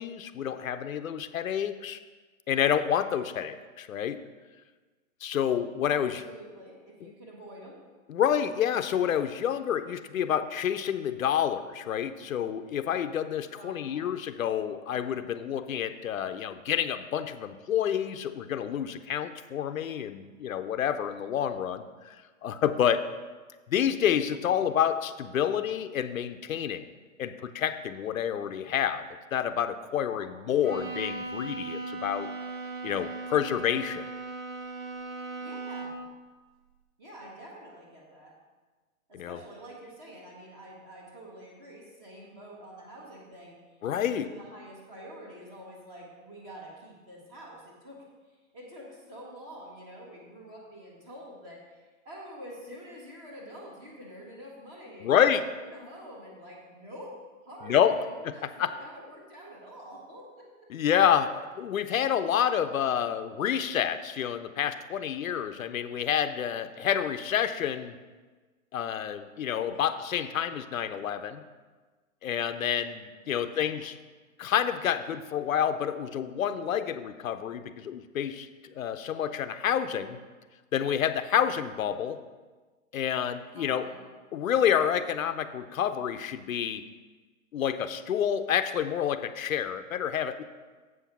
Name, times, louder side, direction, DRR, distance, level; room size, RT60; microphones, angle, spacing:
voice 1, 0.0-2.0 2.5-4.2 5.2-6.2 8.1-22.2 22.4-23.0 23.7-26.8 27.2-29.1 29.3-32.3 32.8-34.0 39.1-39.4 43.8-44.3 55.0-55.4 57.6-58.0 58.6-58.7 60.7-67.9 68.7-71.4 72.2-74.0 74.4-78.5 78.7-80.2 80.7-82.2 82.9-83.9 84.3-86.8 87.5-90.4, left 9 dB, 75° left, 10 dB, 0.7 m, -28 dB
voice 2, 5.9-7.8 13.5-14.1 30.2-30.9 35.4-36.1 37.0-38.3 39.1-57.2 57.4-60.5 69.6-69.9 73.2-73.8 83.5-84.1, equal, 15° right, -3 dB, 1.2 m, -47 dB
Bowed string instrument, 30.6-36.1, right 3 dB, 80° right, 1.7 m, -38 dB
7.8 x 5.9 x 6.0 m, 1.3 s
hypercardioid pair, 175°, 41 cm